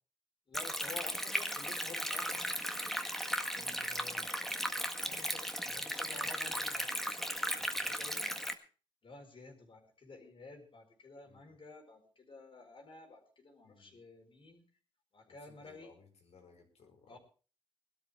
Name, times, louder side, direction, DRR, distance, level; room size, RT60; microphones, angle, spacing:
voice 1, 0.5-2.7 3.5-4.6 5.0-8.3 9.0-14.6 15.1-15.9 17.1-17.2, left 3 dB, 55° left, 3 dB, 4.7 m, -53 dB
Stream, 0.5-8.5, equal, 5° left, 1.6 m, -36 dB
voice 2, 7.6-7.9 11.2-11.4 13.6-14.0 15.3-17.2, left 5 dB, 90° left, 3 dB, 4.8 m, -62 dB
20.5 x 12.5 x 3.5 m, 0.36 s
wide cardioid pair, 100°, 11 cm